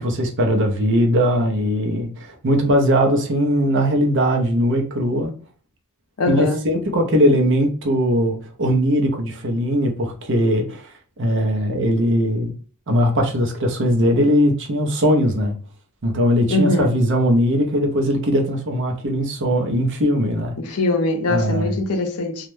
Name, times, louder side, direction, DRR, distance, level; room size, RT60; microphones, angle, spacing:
voice 1, 0.0-5.3 6.3-10.9 11.2-12.5 12.9-15.5 16.0-20.8 21.3-21.8, equal, 55° right, 0.6 m, -20 dB
voice 2, 6.2-6.6 16.5-16.9 20.6-22.5, left 2 dB, 75° left, 0.6 m, -22 dB
2.3 x 2.1 x 3.0 m
head